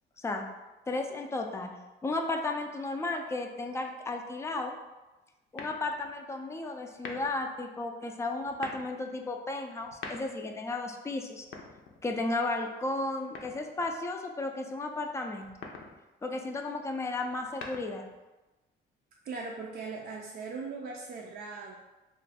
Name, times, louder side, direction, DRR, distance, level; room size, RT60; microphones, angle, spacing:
voice 1, 0.9-1.7 2.0-4.8 5.5-11.5 12.0-15.5 16.2-18.1, left 2 dB, 15° left, 4 dB, 0.3 m, -34 dB
sound 1, 5.5-6.1 6.9-7.5 8.4-8.9 9.8-10.6 11.4-12.3 13.3-14.0 15.4-16.0 17.3-18.2, left 4 dB, 80° left, 0.5 m, -44 dB
voice 2, 19.2-21.8, right 4 dB, 55° right, -1 dB, 0.4 m, -39 dB
2.5 x 2.2 x 4.0 m, 1.1 s
cardioid pair, 90°, 20 cm